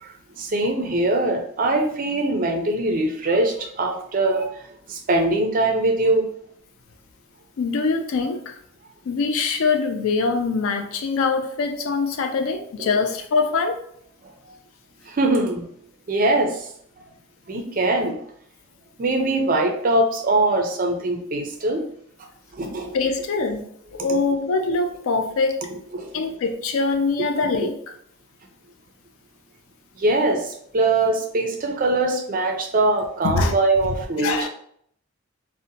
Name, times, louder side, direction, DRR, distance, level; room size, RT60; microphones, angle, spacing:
voice 1, 0.0-4.6 4.9-6.3 12.8-13.0 14.5-14.6 15.1-15.7 16.1-16.7 17.5-18.2 19.0-21.8 22.5-22.9 23.9-24.2 25.9-26.1 30.0-34.5, right 2 dB, 40° right, 4 dB, 0.4 m, -22 dB
voice 2, 7.6-8.6 9.1-13.8 22.9-23.7 24.0-25.6 26.1-27.8 33.2-33.5 34.2-34.5, left 4 dB, 65° left, 5 dB, 0.4 m, -23 dB
2.7 x 2.1 x 2.6 m, 0.66 s
head